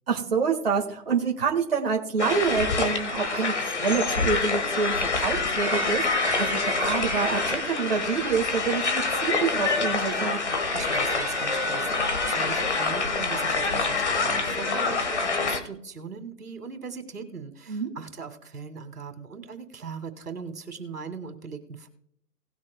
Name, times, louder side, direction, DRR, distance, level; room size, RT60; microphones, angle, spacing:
voice 1, 0.1-10.4 17.7-17.9, right 5 dB, 40° right, -1 dB, 1.7 m, -27 dB
sound 1, 2.2-15.6, left 3 dB, 45° left, 1.4 m, -26 dB
voice 2, 10.7-21.9, right 5 dB, 70° right, 7 dB, 2.5 m, -40 dB
19.0 x 7.8 x 2.2 m, 0.70 s
hypercardioid pair, 180°, 47 cm